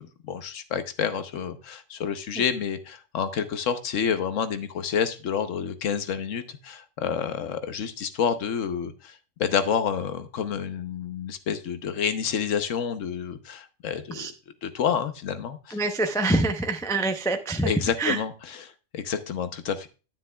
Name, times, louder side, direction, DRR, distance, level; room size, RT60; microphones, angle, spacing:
voice 1, 0.0-14.3 14.6-15.8 17.6-19.9, left 7 dB, 85° left, 10 dB, 1.2 m, -29 dB
voice 2, 15.7-17.7 18.0-18.2, right 2 dB, 5° left, 5 dB, 0.5 m, -25 dB
9.9 x 9.3 x 2.3 m, 0.32 s
omnidirectional pair, 1.3 m